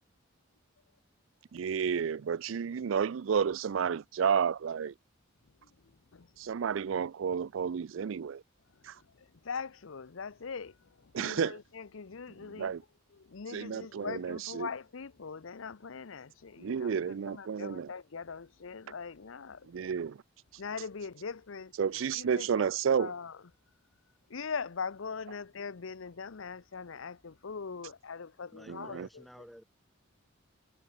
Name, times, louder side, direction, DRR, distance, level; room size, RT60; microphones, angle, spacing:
voice 1, 1.5-4.9 6.4-8.4 8.8-9.0 11.1-11.6 12.6-12.8 13.5-14.7 16.6-17.9 19.7-20.2 21.8-23.1 28.7-29.1, right 7 dB, 70° right, 0.4 m, -31 dB
voice 2, 5.6-6.3 8.8-12.8 13.1-19.7 20.6-22.7 23.0-23.4 24.3-29.2, left 5 dB, 75° left, 0.7 m, -42 dB
voice 3, 28.5-29.6, equal, ahead, 1.5 m, -52 dB
head